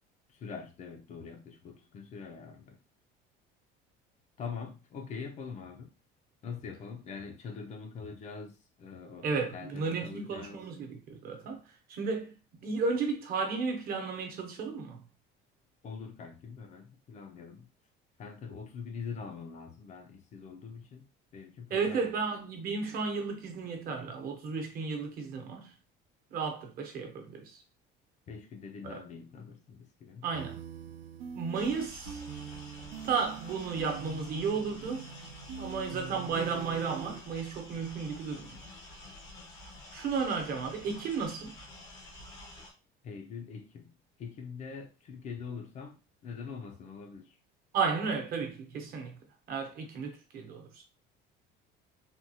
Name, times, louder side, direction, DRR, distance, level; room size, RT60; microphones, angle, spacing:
voice 1, 0.3-2.8 4.4-6.0 6.4-10.6 15.8-17.7 18.2-22.2 28.3-30.3 43.0-47.4, left 5 dB, 35° left, 0.5 m, -44 dB
voice 2, 9.2-11.6 11.9-12.3 12.6-15.0 21.7-25.7 26.3-27.6 28.8-29.0 30.2-30.6 31.3-32.2 33.0-35.1 35.6-38.6 39.9-41.5 47.7-49.2 49.5-50.8, right 5 dB, 50° right, 0.9 m, -33 dB
sound 1, 30.3-37.2, right 7 dB, 70° right, 0.4 m, -43 dB
sound 2, 31.5-42.7, left 2 dB, 80° left, 1.3 m, -50 dB
3.6 x 2.3 x 2.8 m
cardioid pair, 165°, 20 cm